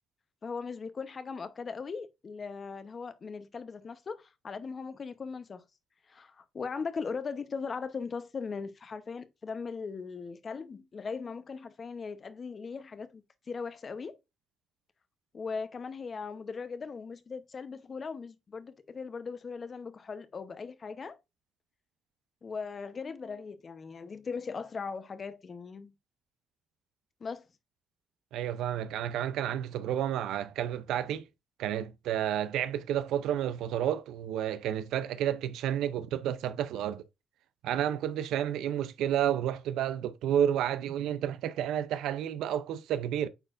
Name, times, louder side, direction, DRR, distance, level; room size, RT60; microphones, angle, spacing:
voice 1, 0.4-5.6 6.1-14.2 15.3-21.2 22.4-25.9 27.2-27.5, left 5 dB, 40° left, 0.8 m, -39 dB
voice 2, 28.3-31.3 31.6-37.0 37.6-43.3, right 10 dB, 85° right, 0.5 m, -31 dB
8.9 x 4.3 x 2.5 m
cardioid pair, 90°, 0 cm